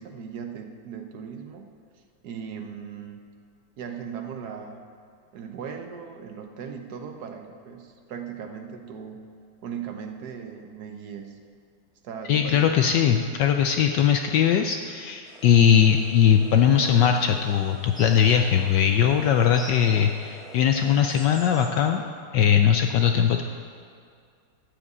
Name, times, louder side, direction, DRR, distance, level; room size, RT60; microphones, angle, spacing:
voice 1, 0.0-1.7 2.2-3.2 3.8-4.8 5.3-9.3 9.6-11.4 12.0-12.7, right 7 dB, 60° right, 5 dB, 1.1 m, -38 dB
voice 2, 12.3-22.0 22.3-23.4, left 8 dB, 80° left, 5 dB, 1.0 m, -20 dB
sound 1, 15.3-21.7, equal, ahead, 1.8 m, -44 dB
13.0 x 5.1 x 8.2 m, 2.3 s
omnidirectional pair, 2.4 m